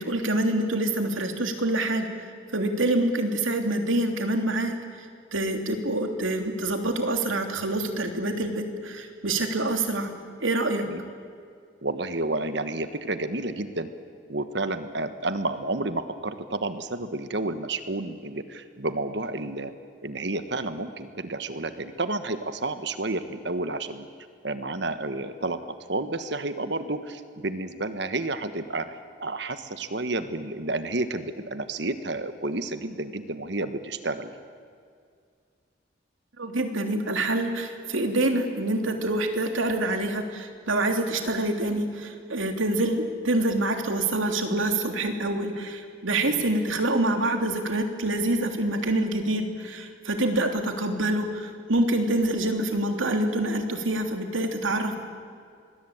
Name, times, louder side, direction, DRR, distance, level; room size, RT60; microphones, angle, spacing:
voice 1, 0.0-2.1 2.5-5.1 5.3-10.1 10.4-10.8 36.4-55.0, right 1 dB, 90° right, 5 dB, 3.2 m, -26 dB
voice 2, 11.8-13.9 14.3-19.7 20.0-24.1 24.4-34.3 46.2-46.4, right 2 dB, 60° right, 10 dB, 1.4 m, -31 dB
26.5 x 21.5 x 8.9 m, 2.2 s
head